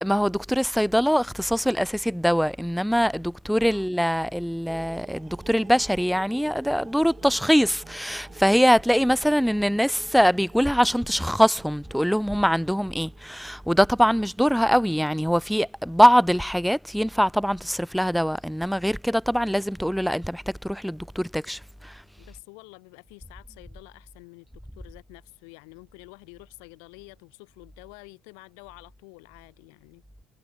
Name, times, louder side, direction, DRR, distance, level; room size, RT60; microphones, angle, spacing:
voice 1, 0.0-21.9, equal, ahead, 0.3 m, -23 dB
sound 1, 4.7-15.6, right 7 dB, 35° right, 1.4 m, -50 dB
voice 2, 22.2-24.5 24.7-30.0, left 40 dB or more, 90° left, 2.9 m, -48 dB
supercardioid pair, 95°, 0 cm